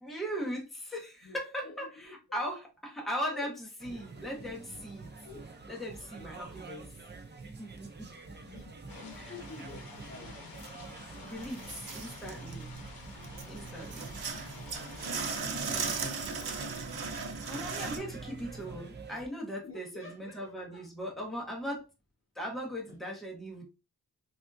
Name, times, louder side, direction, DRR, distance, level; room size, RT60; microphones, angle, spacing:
voice 1, 0.0-5.1 5.7-6.8 7.6-8.1 9.2-9.3 11.2-12.7 13.5-14.2 17.5-21.9 22.3-23.6, equal, ahead, 0.8 m, -39 dB
voice 2, 1.2-2.4 3.3-3.5 5.2-5.5 6.1-6.3 8.4-10.4 14.3-14.6 15.1-16.3 19.6-20.9 22.9-23.0, left 4 dB, 35° left, 0.5 m, -49 dB
sound 1, 3.8-19.3, right 3 dB, 30° right, 0.5 m, -47 dB
sound 2, 8.9-15.4, left 4 dB, 65° left, 0.8 m, -50 dB
sound 3, 11.4-12.9 13.2-18.0, right 5 dB, 70° right, 0.7 m, -37 dB
3.4 x 2.4 x 2.5 m
wide cardioid pair, 160°, 38 cm